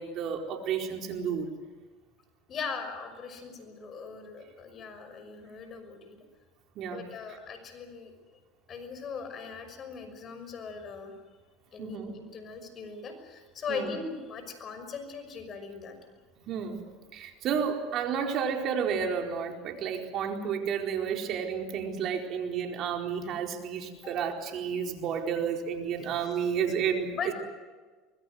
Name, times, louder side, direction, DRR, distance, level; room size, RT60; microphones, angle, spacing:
voice 1, 0.0-1.5 6.7-7.0 11.8-12.1 13.7-13.9 16.5-16.8 17.1-27.3, right 7 dB, 50° right, 3 dB, 4.4 m, -31 dB
voice 2, 2.5-6.2 6.9-8.1 8.7-11.1 11.7-16.0 24.0-24.1 27.1-27.3, left 5 dB, 40° left, 8 dB, 6.0 m, -39 dB
24.5 x 21.5 x 8.0 m, 1.4 s
hypercardioid pair, 95°, 0 cm